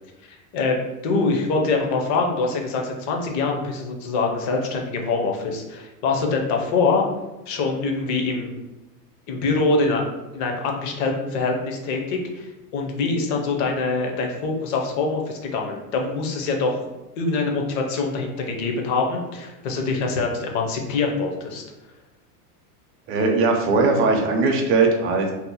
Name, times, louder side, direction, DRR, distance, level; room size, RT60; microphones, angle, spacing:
voice 1, 0.3-0.8 1.0-7.0 7.5-8.5 9.3-10.0 10.3-12.5 12.7-16.8 17.2-21.6, left 3 dB, 40° left, 2 dB, 0.6 m, -24 dB
voice 2, 23.1-25.3, right 3 dB, 30° right, 2 dB, 0.5 m, -19 dB
2.8 x 2.0 x 4.0 m, 1.0 s
supercardioid pair, 135°, 46 cm